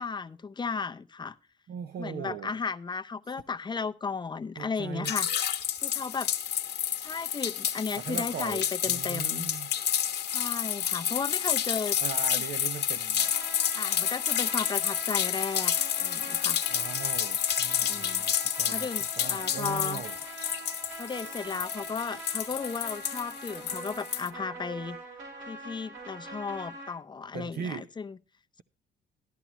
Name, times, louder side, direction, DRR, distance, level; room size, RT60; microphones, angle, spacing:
voice 1, 0.0-1.4 2.0-5.3 5.8-6.3 7.0-9.5 10.3-12.0 12.3-12.4 13.7-16.6 17.9-18.2 18.7-20.0 21.0-25.0 25.5-28.2, left 5 dB, 20° left, 0.6 m, -35 dB
voice 2, 1.7-2.6 4.6-5.1 8.0-9.8 12.0-13.3 16.7-18.9 19.2-20.2 27.3-27.9, right 8 dB, 50° right, 0.6 m, -39 dB
sound 1, 5.0-24.3, left 9 dB, 60° left, 1.1 m, -30 dB
sound 2, 13.2-26.9, right 2 dB, 85° right, 5.3 m, -44 dB
13.5 x 11.0 x 3.0 m
cardioid pair, 90°, 20 cm